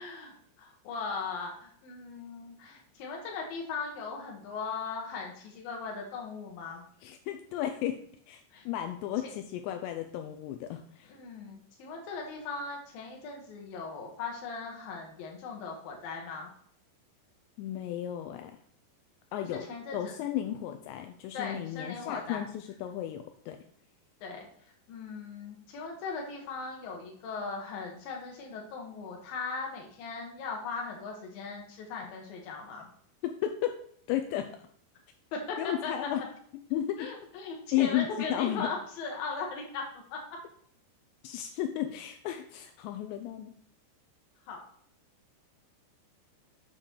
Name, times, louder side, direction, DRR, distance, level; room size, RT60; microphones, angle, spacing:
voice 1, 0.0-6.8 8.5-8.6 11.1-16.5 19.7-20.1 21.3-22.4 24.2-32.9 35.3-36.1 37.0-40.2 44.5-44.6, left 4 dB, 60° left, 0 dB, 3.0 m, -38 dB
voice 2, 7.0-11.2 17.6-18.5 19.3-19.6 19.9-23.6 33.2-33.7 34.1-34.5 35.6-36.2 36.7-37.1 37.7-38.7 41.2-43.5, left 12 dB, 85° left, 6 dB, 2.8 m, -33 dB
7.6 x 3.8 x 6.4 m, 0.64 s
omnidirectional pair, 5.0 m